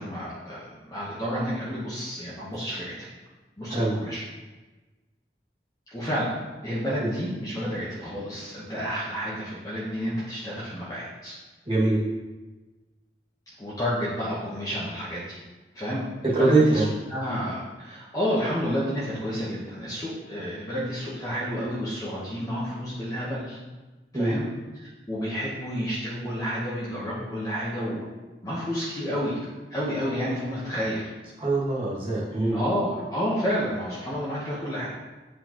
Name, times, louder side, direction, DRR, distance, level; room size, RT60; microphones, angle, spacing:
voice 1, 0.0-2.9 3.6-4.2 5.9-6.3 6.6-11.3 13.6-15.4 15.7-16.8 17.1-23.6 24.1-24.5 25.1-28.0 28.4-29.4 29.7-31.0 32.5-34.9, equal, 20° left, -8 dB, 1.1 m, -30 dB
voice 2, 11.7-12.0 16.3-16.9 24.1-24.3 31.4-32.6, right 2 dB, 30° right, -7 dB, 2.0 m, -23 dB
8.1 x 4.9 x 3.0 m, 1.2 s
head